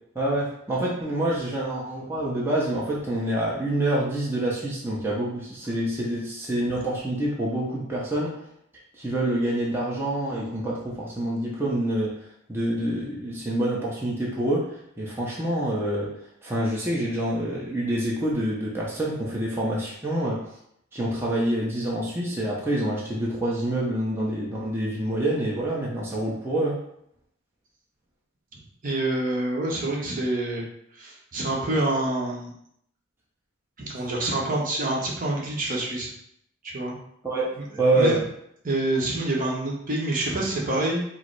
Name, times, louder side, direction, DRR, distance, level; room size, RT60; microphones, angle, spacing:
voice 1, 0.1-8.4 9.0-12.1 12.5-14.7 15.0-16.1 16.4-20.4 20.9-26.8 37.2-37.5 37.8-38.2, right 1 dB, 10° right, -6 dB, 0.7 m, -26 dB
voice 2, 28.5-30.6 31.0-32.5 33.8-36.1 36.6-37.0 37.6-37.7 37.9-38.2 38.6-41.0, right 2 dB, 40° right, -2 dB, 0.9 m, -27 dB
4.7 x 2.0 x 4.6 m, 0.72 s
head